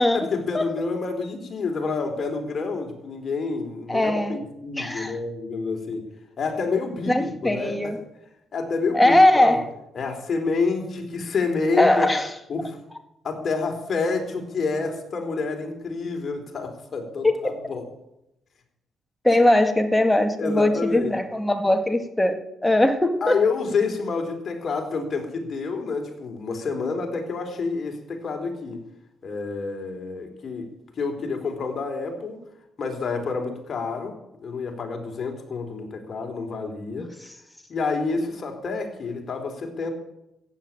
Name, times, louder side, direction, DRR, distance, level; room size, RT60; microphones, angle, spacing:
voice 1, 0.1-6.0 6.4-7.8 8.5-9.6 9.9-12.1 12.5-12.8 13.2-17.9 20.4-21.1 23.2-28.8 29.2-30.7 31.0-32.4 32.8-34.1 34.4-37.1 37.7-39.9, left 4 dB, 45° left, 4 dB, 3.6 m, -28 dB
voice 2, 3.9-4.4 4.8-5.2 7.1-8.0 8.9-9.6 11.8-12.3 17.2-17.3 19.2-23.4 37.0-37.1, left 1 dB, 10° left, 6 dB, 2.0 m, -20 dB
14.5 x 8.5 x 8.9 m, 0.85 s
cardioid pair, 90°, 0 cm